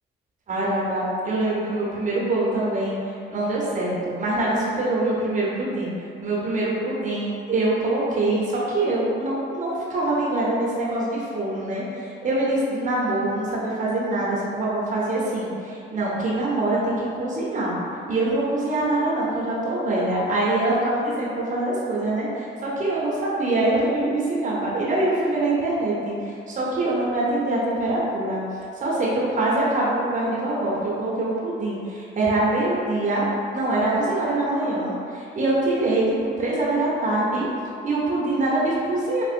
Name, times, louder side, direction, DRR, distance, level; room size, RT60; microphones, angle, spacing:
voice 1, 0.5-3.0 3.3-5.9 6.2-17.8 18.1-28.4 28.8-33.3 33.5-37.5 37.8-39.2, right 2 dB, 40° right, -6 dB, 0.9 m, -24 dB
3.6 x 2.4 x 2.5 m, 2.4 s
cardioid pair, 90°, 20 cm